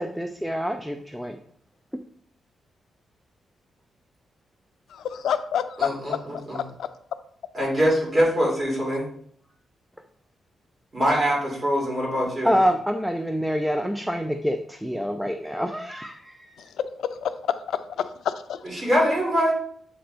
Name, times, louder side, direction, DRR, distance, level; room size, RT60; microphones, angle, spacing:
voice 1, 0.0-1.4 12.4-16.7, equal, ahead, 0.3 m, -26 dB
voice 2, 4.9-6.2 6.5-6.9 16.6-16.7 17.0-17.3 17.7-18.6, left 8 dB, 90° left, 0.4 m, -28 dB
voice 3, 5.8-6.6 7.5-9.1 10.9-12.5 18.7-19.5, equal, 25° right, 2.4 m, -23 dB
7.7 x 3.3 x 3.8 m
wide cardioid pair, 165°, 0 cm